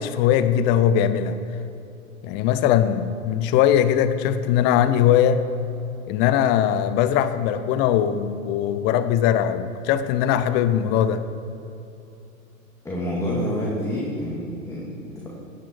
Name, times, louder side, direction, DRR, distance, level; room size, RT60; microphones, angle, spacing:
voice 1, 0.0-1.4 2.2-5.5 6.1-11.3, left 10 dB, 25° left, 12 dB, 0.6 m, -20 dB
voice 2, 12.8-15.3, equal, 5° left, -5 dB, 2.0 m, -28 dB
16.5 x 9.6 x 4.6 m, 2.8 s
figure-of-eight pair, 105°, 42 cm